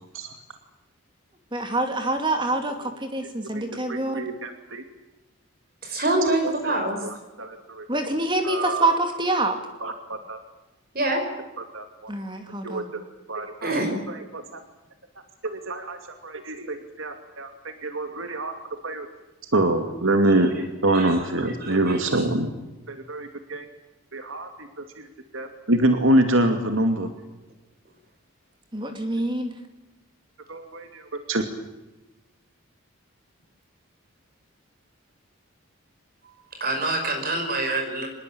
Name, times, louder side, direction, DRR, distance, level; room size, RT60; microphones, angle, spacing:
voice 1, 1.5-4.3 7.9-9.6 12.1-12.9 28.7-29.5, right 2 dB, 20° right, 6 dB, 2.5 m, -26 dB
voice 2, 3.5-4.8 6.2-6.7 7.0-7.9 8.4-9.0 9.8-10.4 11.7-12.1 12.6-12.8 13.3-13.7 14.1-14.6 15.4-18.5 18.8-19.1 19.5-20.5 20.8-22.5 22.9-23.7 24.1-25.1 25.3-27.1 30.5-31.4, right 1 dB, 70° right, 6 dB, 2.6 m, -26 dB
voice 3, 5.8-7.1 10.9-11.2 13.6-14.0 20.9-21.1 36.2-38.1, right 2 dB, 45° right, 3 dB, 5.6 m, -25 dB
26.0 x 21.0 x 8.7 m, 1.0 s
head